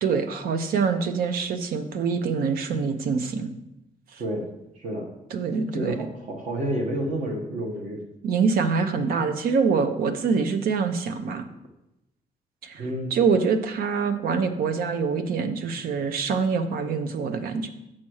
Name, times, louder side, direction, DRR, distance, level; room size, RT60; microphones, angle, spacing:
voice 1, 0.0-3.5 4.1-4.2 5.3-6.0 8.2-11.4 12.6-12.8 13.1-17.7, right 5 dB, 80° right, 9 dB, 0.8 m, -25 dB
voice 2, 4.2-4.5 4.8-5.1 5.7-8.0 12.8-13.1, right 1 dB, 60° right, 1 dB, 1.3 m, -29 dB
7.5 x 4.3 x 6.4 m, 0.88 s
cardioid pair, 175°, 15 cm